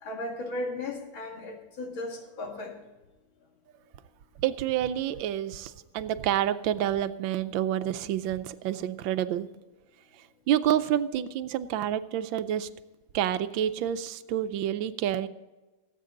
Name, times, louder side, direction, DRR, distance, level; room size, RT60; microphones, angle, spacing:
voice 1, 0.0-2.7, left 2 dB, 90° left, 2 dB, 2.8 m, -36 dB
voice 2, 4.4-9.5 10.1-12.7 13.1-15.3, right 11 dB, 80° right, 12 dB, 1.4 m, -28 dB
18.5 x 8.3 x 3.8 m, 1.1 s
omnidirectional pair, 2.1 m